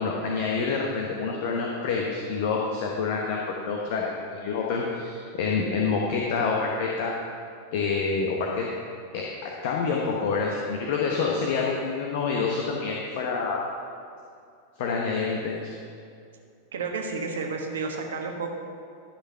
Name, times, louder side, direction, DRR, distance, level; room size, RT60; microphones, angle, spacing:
voice 1, 0.0-7.1 7.7-8.7 9.1-13.6 14.8-15.7, left 4 dB, 50° left, -1 dB, 1.1 m, -27 dB
voice 2, 16.7-18.5, right 4 dB, 65° right, 2 dB, 1.2 m, -31 dB
12.0 x 6.0 x 5.6 m, 2.4 s
figure-of-eight pair, 90°, 0 cm